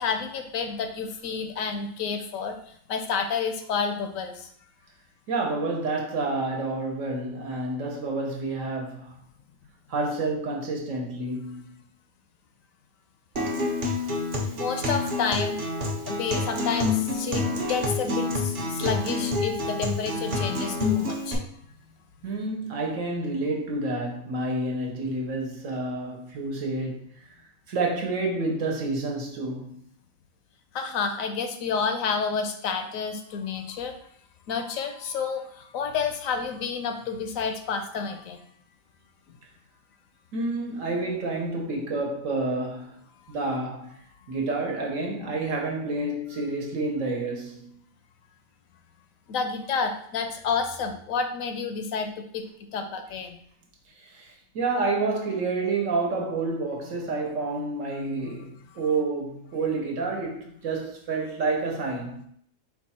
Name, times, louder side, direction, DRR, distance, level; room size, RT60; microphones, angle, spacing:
voice 1, 0.0-4.5 14.5-15.6 16.1-21.4 30.7-34.0 34.5-38.4 49.3-52.4 52.7-53.4, left 5 dB, 80° left, 1.0 m, -30 dB
voice 2, 5.3-9.1 9.9-11.7 22.2-27.1 27.7-29.8 40.3-43.0 43.3-43.9 44.3-47.7 54.0-62.2, right 3 dB, 70° right, 1.3 m, -29 dB
Acoustic guitar, 13.4-21.3, left 3 dB, 45° right, 0.9 m, -28 dB
4.5 x 2.4 x 4.2 m
omnidirectional pair, 1.4 m